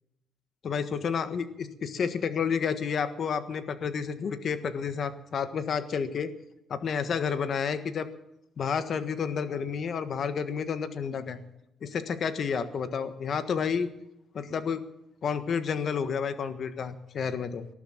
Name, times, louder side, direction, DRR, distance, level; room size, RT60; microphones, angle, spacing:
voice 1, 0.6-6.3 6.7-8.1 8.6-11.4 11.8-13.9 14.3-14.8 15.2-17.7, left 6 dB, 50° left, 11 dB, 1.5 m, -30 dB
19.0 x 11.5 x 5.9 m, 0.84 s
cardioid pair, 130°, 0 cm